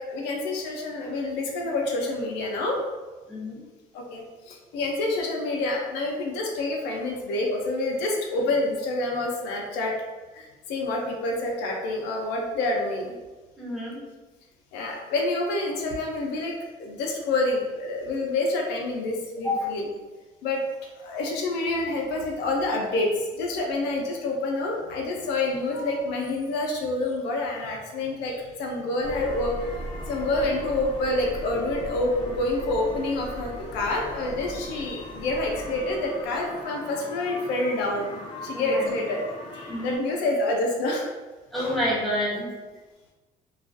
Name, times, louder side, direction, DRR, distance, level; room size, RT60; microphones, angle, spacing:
voice 1, 0.0-2.8 3.9-9.9 10.3-13.2 14.7-16.5 16.8-19.9 20.4-20.6 21.0-29.5 30.1-39.2 39.8-41.1, left 2 dB, 90° left, 0 dB, 0.5 m, -27 dB
voice 2, 3.3-3.6 13.6-14.0 19.4-19.6 30.0-30.1 38.5-38.8 39.7-40.0 41.5-42.5, left 1 dB, ahead, -6 dB, 0.8 m, -28 dB
sound 1, 29.0-40.0, left 1 dB, 30° left, 0.5 m, -38 dB
2.3 x 2.3 x 2.5 m, 1.2 s
cardioid pair, 110°, 17 cm